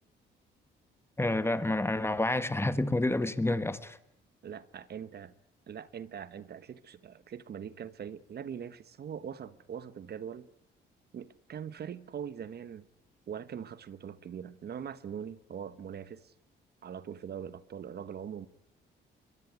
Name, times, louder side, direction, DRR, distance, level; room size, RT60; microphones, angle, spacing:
voice 1, 1.2-4.0, left 2 dB, 10° left, 1.7 m, -29 dB
voice 2, 4.4-5.3 5.7-10.5 11.1-12.9 13.3-16.3 16.8-18.5, right 8 dB, 55° right, 1.2 m, -42 dB
23.0 x 22.0 x 9.5 m
cardioid pair, 90°, 20 cm